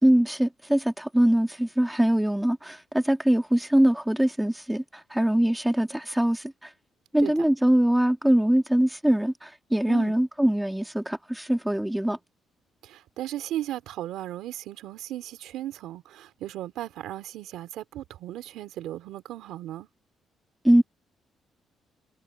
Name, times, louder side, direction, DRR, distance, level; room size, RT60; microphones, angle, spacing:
voice 1, 0.0-6.7 7.1-12.2 20.6-20.8, right 1 dB, 5° right, 2.2 m, -23 dB
voice 2, 12.8-19.9, right 13 dB, 85° right, 3.5 m, -36 dB
cardioid pair, 110°, 0 cm